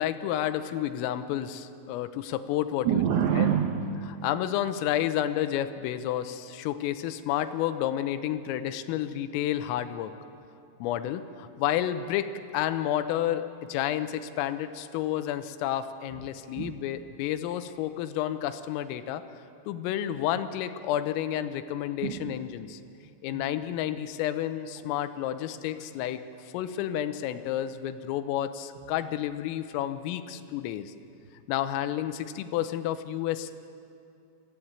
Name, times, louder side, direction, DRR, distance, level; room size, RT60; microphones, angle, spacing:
voice 1, 0.0-3.0 3.4-3.5 4.2-10.1 10.8-12.3 12.5-19.2 19.7-22.8 23.2-30.9 31.5-33.7, left 11 dB, 85° left, 11 dB, 3.4 m, -30 dB
voice 2, 2.8-4.1 16.1-16.2 16.6-16.7 22.0-22.4 23.3-23.4, right 9 dB, 85° right, 4 dB, 2.2 m, -27 dB
24.0 x 14.5 x 8.8 m, 2.6 s
omnidirectional pair, 5.9 m